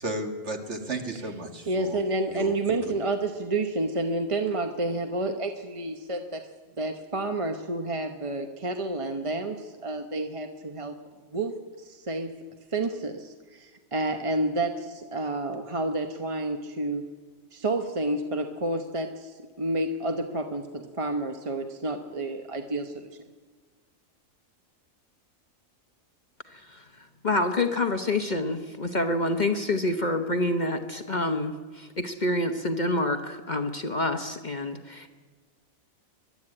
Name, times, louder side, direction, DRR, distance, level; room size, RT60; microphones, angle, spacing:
voice 1, 0.0-2.0 2.3-2.8, right 2 dB, 55° right, 5 dB, 2.1 m, -34 dB
voice 2, 1.7-6.5 6.8-11.0 11.3-12.3 12.7-17.0 17.5-23.1, right 2 dB, 25° right, 5 dB, 0.9 m, -30 dB
voice 3, 26.5-26.8 27.2-35.1, left 2 dB, 35° left, 6 dB, 1.0 m, -27 dB
22.0 x 12.0 x 9.8 m, 1.4 s
omnidirectional pair, 1.4 m